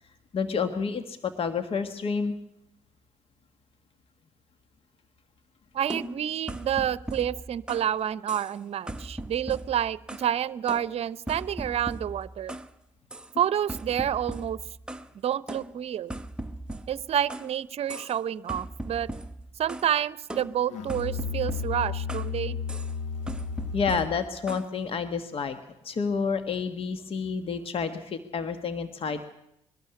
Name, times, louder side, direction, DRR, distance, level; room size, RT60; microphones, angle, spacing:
voice 1, 0.3-2.3 23.7-25.6 25.8-29.2, left 5 dB, 50° left, 9 dB, 1.5 m, -29 dB
voice 2, 5.7-12.6 13.4-14.6 15.2-16.1 16.9-19.1 19.6-22.6, right 10 dB, 55° right, 18 dB, 0.7 m, -29 dB
sound 1, 5.9-7.9 8.3-8.6 8.9-10.3 10.7-12.7 13.1-13.3 13.7-15.1 15.5-17.5 17.9-18.2 18.5-19.9 20.3-22.3 22.7-22.9 23.3-24.7, right 1 dB, 5° right, 1.0 m, -39 dB
Musical instrument, 20.7-24.2, left 6 dB, 70° left, 1.1 m, -33 dB
21.5 x 12.5 x 10.0 m, 0.81 s
supercardioid pair, 65°, 12 cm